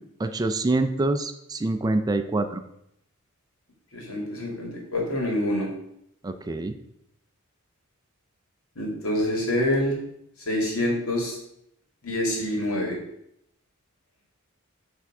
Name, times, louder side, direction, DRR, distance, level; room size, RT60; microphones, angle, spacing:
voice 1, 0.2-2.6 6.2-6.8, right 2 dB, 20° right, 8 dB, 0.4 m, -25 dB
voice 2, 3.9-5.7 8.8-10.0 10.5-11.4 12.0-13.0, left 1 dB, 85° left, -1 dB, 2.0 m, -26 dB
7.3 x 3.4 x 4.8 m, 0.76 s
head